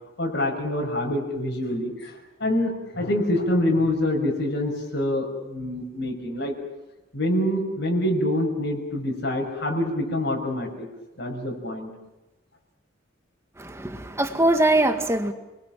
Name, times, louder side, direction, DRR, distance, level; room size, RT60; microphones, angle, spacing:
voice 1, 0.2-6.5 7.1-10.9 11.2-11.9, left 1 dB, 60° left, 6.1 m, -26 dB
voice 2, 13.6-15.3, right 1 dB, 15° right, 1.9 m, -22 dB
30.0 x 21.5 x 7.6 m
head